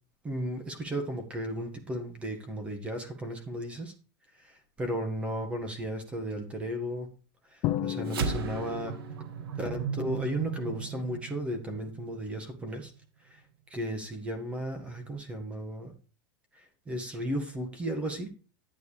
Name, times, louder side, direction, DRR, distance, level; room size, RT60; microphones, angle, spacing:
voice 1, 0.2-3.9 4.3-7.1 7.5-9.0 9.6-12.9 13.2-13.4 13.7-15.9 16.5-18.3, equal, 10° right, 6 dB, 1.7 m, -35 dB
Drum, 7.6-9.3, left 13 dB, 30° left, 0.6 m, -33 dB
sound 1, 8.1-12.7, right 7 dB, 90° right, 1.8 m, -36 dB
11.5 x 9.3 x 3.3 m, 0.34 s
supercardioid pair, 180°, 12 cm